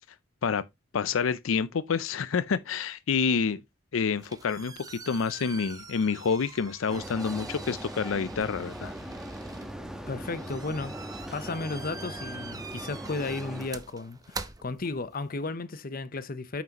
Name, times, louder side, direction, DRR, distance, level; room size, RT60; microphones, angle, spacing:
voice 1, 0.9-3.6 3.9-4.7 5.1-8.9, left 5 dB, 85° left, 0.5 m, -28 dB
sound 1, 4.0-15.4, right 4 dB, 20° right, 0.7 m, -45 dB
sound 2, 6.9-13.7, equal, 5° right, 1.1 m, -40 dB
voice 2, 10.1-11.0 11.3-16.6, left 3 dB, 45° left, 0.8 m, -34 dB
9.0 x 6.0 x 2.9 m
head